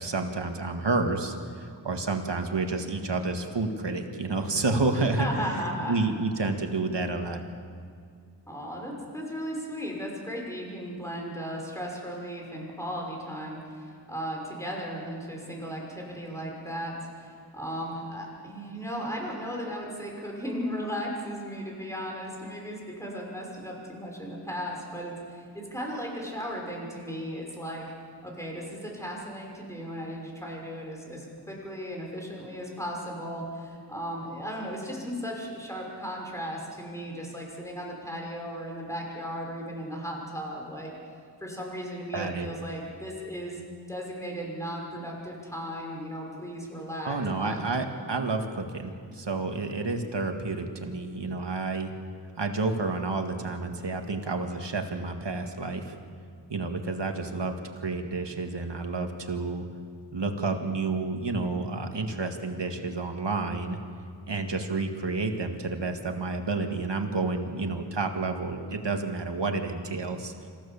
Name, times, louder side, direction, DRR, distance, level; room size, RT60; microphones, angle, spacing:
voice 1, 0.0-5.3 5.9-7.4 42.1-42.5 47.0-51.9 52.4-56.0 56.5-59.7 60.1-63.8 64.3-70.3, right 3 dB, 80° right, 4 dB, 1.9 m, -30 dB
voice 2, 5.0-6.0 8.5-27.9 28.2-40.9 41.4-43.6 43.9-47.6, equal, 5° left, -1 dB, 6.1 m, -36 dB
26.5 x 15.5 x 7.2 m, 2.2 s
wide cardioid pair, 50°, 42 cm